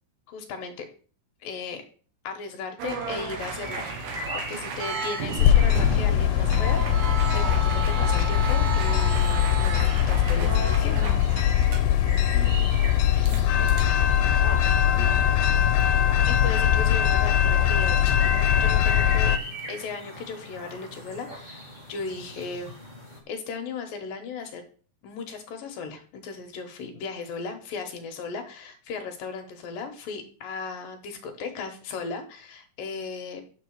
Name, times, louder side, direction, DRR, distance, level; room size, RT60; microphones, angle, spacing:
voice 1, 0.3-0.9 1.4-1.8 2.2-6.8 7.3-11.1 16.3-19.4 19.7-22.7 23.3-24.6 25.0-33.4, left 4 dB, 70° left, 5 dB, 2.5 m, -36 dB
sound 1, 2.8-12.0 13.3-13.4 13.7-14.2 14.9-15.2 15.9-16.2, right 5 dB, 85° right, 3.6 m, -33 dB
sound 2, 3.6-23.2, equal, 55° right, 0.5 m, -41 dB
sound 3, 5.4-19.4, left 10 dB, 90° left, 2.8 m, -21 dB
voice 2, 12.3-13.9 14.8-15.6, left 2 dB, 15° right, 1 dB, 0.7 m, -43 dB
9.7 x 6.7 x 4.6 m, 0.42 s
omnidirectional pair, 4.7 m